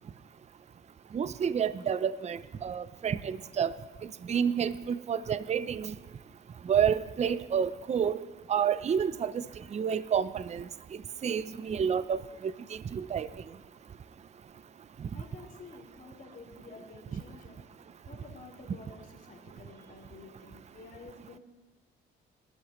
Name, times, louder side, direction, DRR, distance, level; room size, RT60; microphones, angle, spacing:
voice 1, 1.1-3.7 4.3-5.9 6.7-8.2 8.5-9.4 9.7-10.6 11.2-12.2 12.9-13.3, right 7 dB, 35° right, 15 dB, 0.5 m, -29 dB
voice 2, 14.4-21.4, left 3 dB, 45° left, -3 dB, 4.0 m, -51 dB
22.5 x 12.5 x 3.1 m, 1.2 s
cardioid pair, 90°, 20 cm